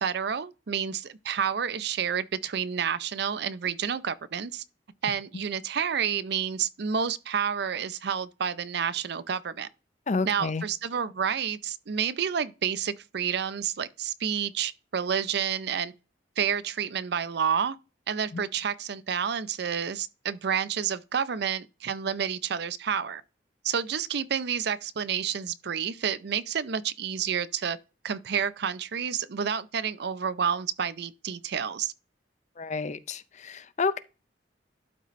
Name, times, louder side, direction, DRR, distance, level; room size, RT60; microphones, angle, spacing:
voice 1, 0.0-4.6 5.0-9.7 10.3-15.9 16.4-17.8 18.1-23.2 23.6-27.8 28.0-31.9, right 7 dB, 65° right, 0.5 m, -29 dB
voice 2, 10.1-10.6 18.3-18.4 32.6-34.0, left 4 dB, 40° left, 0.5 m, -30 dB
12.0 x 4.1 x 3.1 m
head